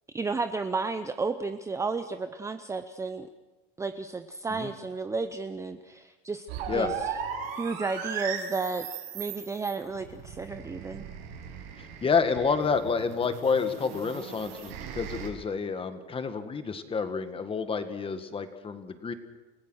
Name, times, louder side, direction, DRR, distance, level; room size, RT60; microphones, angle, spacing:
voice 1, 0.1-3.3 3.8-6.5 6.7-7.1 7.6-8.9 9.1-11.0, right 4 dB, 10° right, 9 dB, 0.7 m, -32 dB
sound 1, 6.5-15.3, right 8 dB, 85° right, 7.1 m, -38 dB
voice 2, 11.8-19.1, left 5 dB, 20° left, 9 dB, 1.7 m, -29 dB
29.5 x 16.5 x 6.4 m, 1.2 s
supercardioid pair, 145°, 29 cm